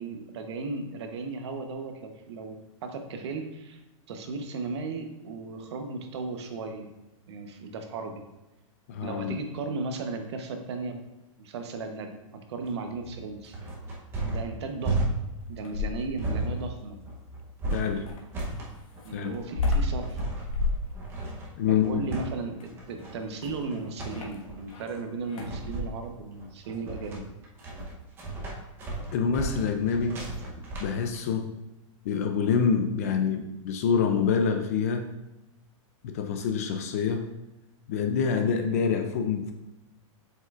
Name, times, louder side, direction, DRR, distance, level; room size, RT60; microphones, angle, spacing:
voice 1, 0.0-3.8 4.1-6.9 7.3-8.2 9.0-11.0 11.4-13.6 14.3-15.0 15.5-17.0 19.0-20.2 21.7-27.2, right 3 dB, 55° right, 5 dB, 0.9 m, -36 dB
voice 2, 8.9-9.4 17.7-18.0 19.1-19.3 21.6-22.0 29.1-30.2 30.8-31.5 32.0-35.1 36.0-37.3 37.9-39.5, left 6 dB, 30° left, 6 dB, 0.3 m, -26 dB
sound 1, 12.6-31.2, right 2 dB, 15° right, 0.7 m, -34 dB
sound 2, 15.4-16.3 18.1-24.9 25.2-25.7 27.0-27.2, left 3 dB, 85° left, 1.4 m, -32 dB
7.5 x 5.5 x 2.4 m, 0.98 s
supercardioid pair, 175°, 17 cm